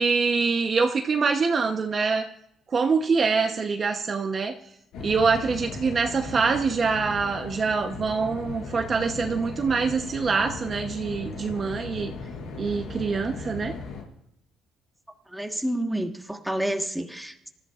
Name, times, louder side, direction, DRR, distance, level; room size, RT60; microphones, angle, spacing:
voice 1, 0.0-2.2 2.7-4.6 5.0-12.1 12.6-13.7, right 4 dB, 35° right, 4 dB, 0.9 m, -25 dB
sound 1, 4.9-14.0, left 4 dB, 75° left, 4.6 m, -37 dB
voice 2, 15.3-17.5, right 1 dB, 5° right, 4 dB, 1.4 m, -29 dB
26.5 x 14.0 x 2.5 m, 0.80 s
cardioid pair, 140°, 0 cm